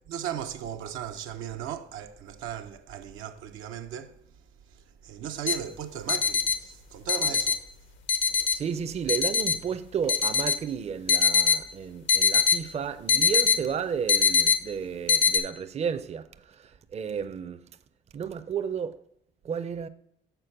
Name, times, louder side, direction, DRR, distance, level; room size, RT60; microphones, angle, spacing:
voice 1, 0.1-4.1 5.0-7.6, right 9 dB, 90° right, 0.6 m, -36 dB
sound 1, 5.5-5.6 6.1-6.5 7.1-7.5 8.1-8.5 9.1-9.5 10.1-10.5 11.1-11.6 12.1-12.6 13.1-13.6 14.1-14.6 15.1-15.4, left 6 dB, 70° left, 0.7 m, -21 dB
voice 2, 8.5-16.3 16.9-17.6 18.1-19.0 19.4-19.9, right 7 dB, 35° right, 0.4 m, -32 dB
6.7 x 4.4 x 5.7 m
cardioid pair, 90°, 20 cm